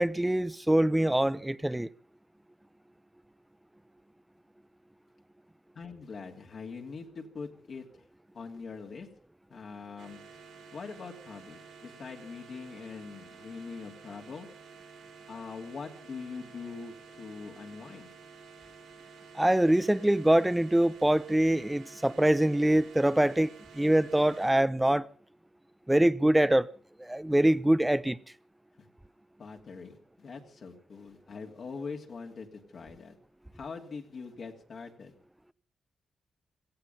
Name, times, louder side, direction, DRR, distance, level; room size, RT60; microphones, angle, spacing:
voice 1, 0.0-1.9 19.3-25.1 25.9-26.7 27.0-28.2, right 1 dB, 10° right, 0.8 m, -24 dB
voice 2, 5.7-8.0 8.3-9.1 9.5-10.2 10.7-14.5 15.3-18.1 29.4-33.2 33.5-35.1, left 5 dB, 60° left, 2.6 m, -43 dB
sound 1, 10.0-24.5, right 5 dB, 85° right, 6.7 m, -51 dB
17.0 x 15.0 x 5.6 m
supercardioid pair, 50°, 0 cm